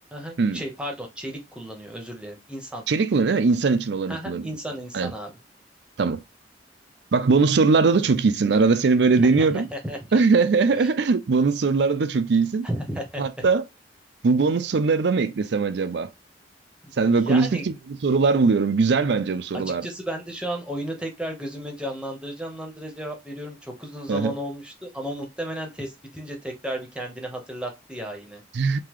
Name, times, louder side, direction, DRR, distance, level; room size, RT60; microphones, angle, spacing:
voice 1, 0.1-2.8 4.1-5.3 9.3-10.2 10.8-10.9 12.6-13.5 16.8-17.6 19.8-28.4, equal, 5° right, 1.0 m, -34 dB
voice 2, 2.9-4.5 4.9-5.1 6.0-6.2 7.1-9.7 10.1-12.7 13.2-13.6 14.2-16.1 17.0-19.9 24.1-24.3 28.5-28.8, right 4 dB, 65° right, 0.5 m, -21 dB
3.8 x 2.8 x 3.0 m
head